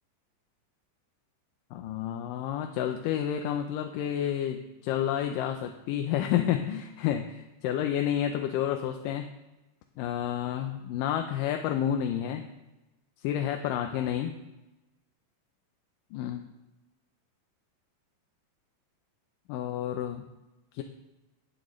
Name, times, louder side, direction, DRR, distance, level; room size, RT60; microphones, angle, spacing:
voice 1, 1.7-9.3 10.0-12.4 13.2-14.4 16.1-16.4 19.5-20.3 20.7-20.8, left 10 dB, 85° left, 5 dB, 2.3 m, -30 dB
18.0 x 9.1 x 3.2 m, 1.0 s
omnidirectional pair, 3.8 m